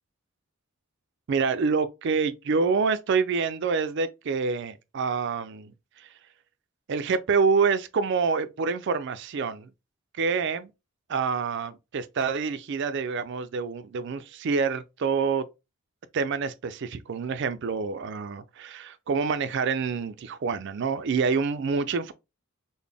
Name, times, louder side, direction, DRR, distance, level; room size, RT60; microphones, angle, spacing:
voice 1, 1.3-5.7 6.0-6.1 6.9-9.7 10.2-10.7 11.1-15.4 16.1-22.1, right 5 dB, 55° right, 0.4 m, -27 dB
3.9 x 2.0 x 3.4 m
head